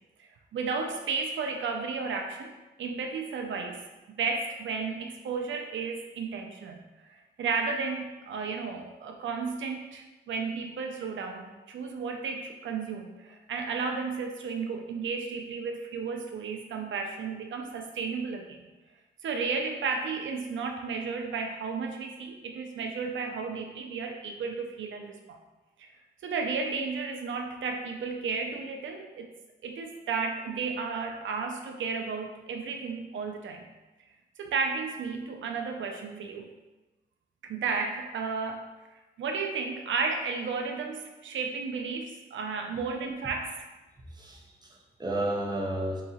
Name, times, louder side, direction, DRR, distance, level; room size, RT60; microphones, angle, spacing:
voice 1, 0.5-3.8 4.2-6.8 7.1-18.6 19.2-25.4 25.8-25.9 26.2-29.3 29.6-33.6 34.4-36.5 37.4-38.7 39.2-43.7, right 5 dB, 80° right, 3 dB, 0.4 m, -33 dB
voice 2, 44.1-46.0, right 1 dB, 20° right, -1 dB, 0.8 m, -32 dB
3.8 x 2.7 x 4.1 m, 1.1 s
cardioid pair, 90°, 19 cm